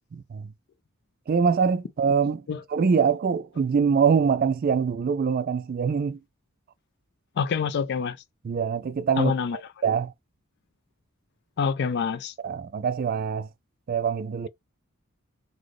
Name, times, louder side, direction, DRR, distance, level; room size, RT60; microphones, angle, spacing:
voice 1, 0.1-0.5 1.3-6.2 8.4-9.3 9.8-10.1 12.4-13.5 13.9-14.5, right 6 dB, 45° right, 0.3 m, -24 dB
voice 2, 7.4-8.2 9.2-9.6 11.6-12.3, left 6 dB, 55° left, 0.4 m, -26 dB
3.9 x 2.1 x 3.0 m
head